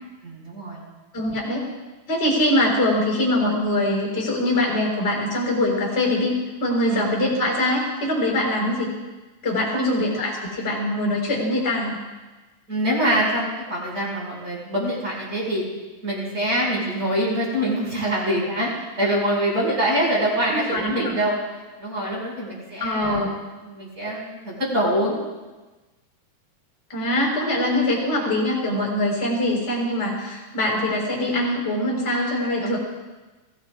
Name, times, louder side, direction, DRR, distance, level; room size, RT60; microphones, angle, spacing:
voice 1, 0.2-0.8 6.9-7.1 9.7-10.0 12.7-15.6 16.0-18.7 19.0-21.4 21.8-23.3 23.6-25.2 32.6-32.8, equal, 20° right, -4 dB, 5.7 m, -24 dB
voice 2, 1.1-1.7 2.1-8.9 9.4-12.0 20.5-21.2 22.8-23.3 26.9-32.8, left 1 dB, 15° left, -2 dB, 4.3 m, -23 dB
23.0 x 16.5 x 2.5 m, 1.2 s
omnidirectional pair, 4.6 m